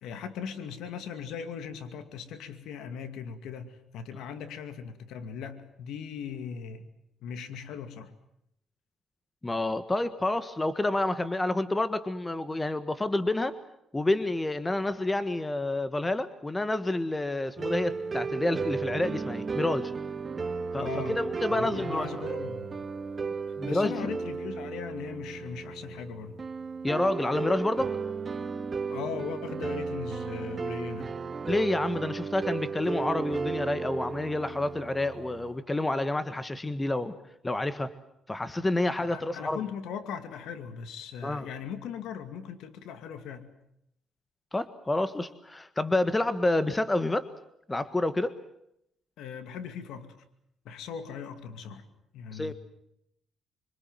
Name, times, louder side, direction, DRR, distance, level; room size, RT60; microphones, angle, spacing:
voice 1, 0.0-6.9 7.2-8.1 20.8-21.2 21.5-22.7 23.7-26.4 28.9-31.1 39.0-43.5 49.2-50.1 50.6-51.8 52.1-52.5, left 7 dB, 85° left, 9 dB, 2.4 m, -39 dB
voice 2, 9.4-13.5 13.9-19.9 20.7-22.2 23.6-24.1 26.8-27.9 31.5-37.1 37.4-37.9 38.3-39.6 41.2-41.5 44.5-47.3 47.7-48.3 52.3-52.5, left 2 dB, 15° left, 11 dB, 1.6 m, -29 dB
sound 1, 17.6-35.6, right 5 dB, 35° right, 1.8 m, -34 dB
25.5 x 25.5 x 7.6 m, 0.76 s
cardioid pair, 90°, 0 cm